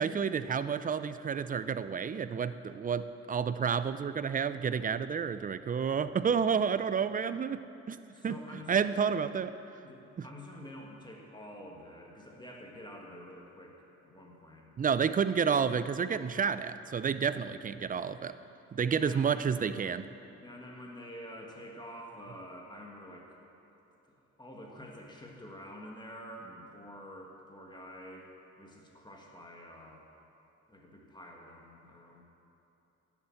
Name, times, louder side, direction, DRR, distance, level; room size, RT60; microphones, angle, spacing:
voice 1, 0.0-8.4 8.7-9.5 10.2-10.3 14.8-18.4 18.7-20.1, right 6 dB, 30° right, 13 dB, 0.4 m, -30 dB
voice 2, 8.1-9.1 9.8-13.8 14.0-14.7 18.9-19.4 20.4-23.4 24.1-28.3 28.6-30.1 30.7-32.2, equal, 15° left, -1 dB, 1.7 m, -48 dB
10.5 x 7.3 x 7.8 m, 3.0 s
cardioid pair, 90°, 30 cm